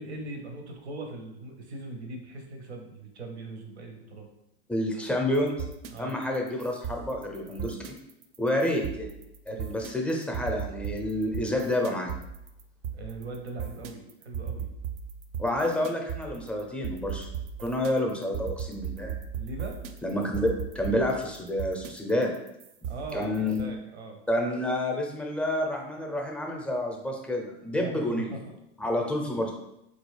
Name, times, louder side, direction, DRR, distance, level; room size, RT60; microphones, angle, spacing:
voice 1, 0.0-4.3 5.9-6.2 8.8-8.9 9.5-9.7 12.9-14.7 19.3-19.8 22.8-24.2 27.7-28.5, right 2 dB, 85° right, 3 dB, 0.7 m, -40 dB
voice 2, 4.7-5.5 6.0-8.0 8.4-9.1 9.5-12.2 15.4-17.3 17.6-19.1 20.0-22.3 23.1-23.6 24.3-28.3 28.8-29.5, left 1 dB, 5° left, 0 dB, 0.5 m, -29 dB
sound 1, 5.3-23.6, right 7 dB, 50° right, 0.5 m, -38 dB
3.9 x 2.4 x 3.1 m, 0.82 s
hypercardioid pair, 105°, 32 cm